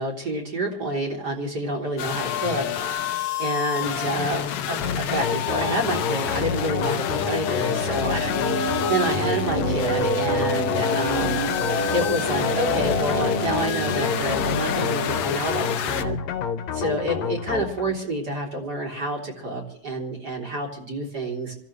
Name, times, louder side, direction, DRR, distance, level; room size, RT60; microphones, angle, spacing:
voice 1, 0.0-2.6 3.4-8.3 8.9-11.4 11.9-16.2 16.7-21.5, right 1 dB, 30° right, 0 dB, 3.6 m, -28 dB
sound 1, 2.0-16.0, left 9 dB, 80° left, 1.3 m, -29 dB
sound 2, 4.8-18.0, left 7 dB, 60° left, 2.1 m, -29 dB
sound 3, 7.7-15.2, right 1 dB, 55° right, 0.7 m, -28 dB
26.5 x 15.0 x 3.2 m, 0.64 s
omnidirectional pair, 4.0 m